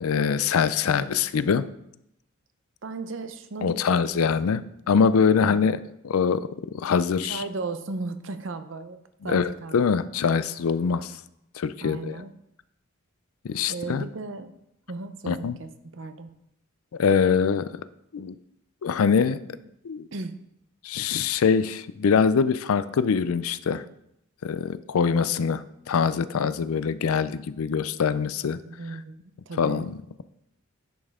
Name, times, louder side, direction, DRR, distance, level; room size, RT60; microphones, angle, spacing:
voice 1, 0.0-1.7 3.6-6.5 6.7-7.4 9.2-11.2 11.6-12.2 13.4-14.1 15.3-15.6 17.0-17.7 18.1-18.3 18.8-19.6 19.8-20.1 20.8-23.8 24.4-28.6 29.6-29.9, left 6 dB, 85° left, 15 dB, 0.4 m, -24 dB
voice 2, 0.8-1.2 2.8-4.0 4.4-4.6 5.4-5.7 7.2-9.8 11.8-12.3 13.7-14.5 14.9-16.3 20.1-20.4 28.7-29.8, right 3 dB, 60° right, 10 dB, 0.7 m, -36 dB
10.5 x 5.4 x 3.6 m, 0.79 s
head